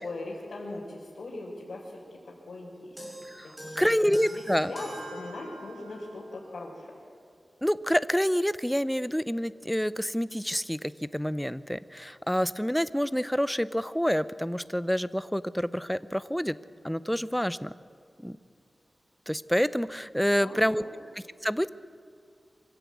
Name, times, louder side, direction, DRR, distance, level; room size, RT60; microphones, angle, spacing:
voice 1, 0.0-3.0 3.6-3.9 4.3-6.9 20.3-20.9, left 2 dB, 75° left, -6 dB, 3.8 m, -40 dB
sound 1, 3.0-6.2, equal, 15° right, 5.9 m, -43 dB
voice 2, 3.8-4.7 7.6-10.8 11.1-16.5 16.8-17.7 18.2-18.4 19.3-20.8 21.4-21.7, equal, 5° left, 15 dB, 0.5 m, -27 dB
24.0 x 15.5 x 8.4 m, 2.3 s
wide cardioid pair, 105°, 0 cm